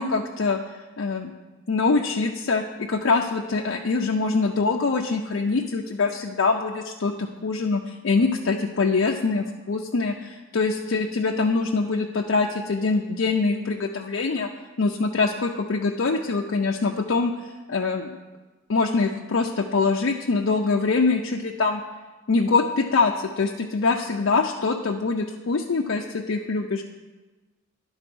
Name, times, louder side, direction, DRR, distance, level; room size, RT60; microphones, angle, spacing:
voice 1, 0.0-1.3 1.7-14.5 14.8-18.2 18.7-21.8 22.3-26.8, left 4 dB, 60° left, 0 dB, 0.5 m, -24 dB
11.0 x 4.0 x 6.1 m, 1.2 s
head